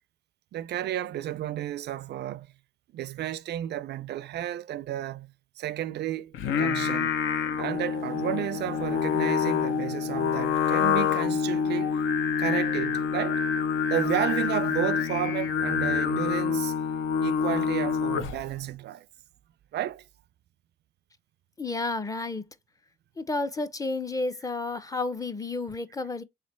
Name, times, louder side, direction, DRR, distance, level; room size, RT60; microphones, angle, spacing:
voice 1, 0.5-2.5 2.9-7.2 7.6-12.0 12.4-13.4 13.9-16.7 17.2-19.1 19.7-20.0, right 12 dB, 60° right, 0.4 m, -32 dB
Singing, 6.3-18.5, left 7 dB, 80° left, 0.6 m, -27 dB
voice 2, 21.6-22.5 23.2-26.2, left 3 dB, 15° left, 0.5 m, -31 dB
3.3 x 3.2 x 4.2 m
cardioid pair, 90°, 20 cm